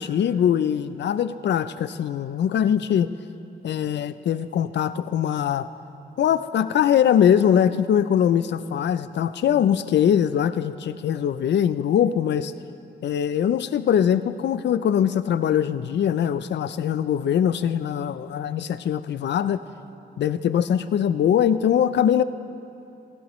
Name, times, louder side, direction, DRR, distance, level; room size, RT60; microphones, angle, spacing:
voice 1, 0.0-3.1 3.6-5.7 6.2-12.5 13.0-19.6 20.2-22.2, left 9 dB, 85° left, 13 dB, 0.4 m, -22 dB
17.5 x 17.0 x 3.1 m, 2.8 s
wide cardioid pair, 180°, 18 cm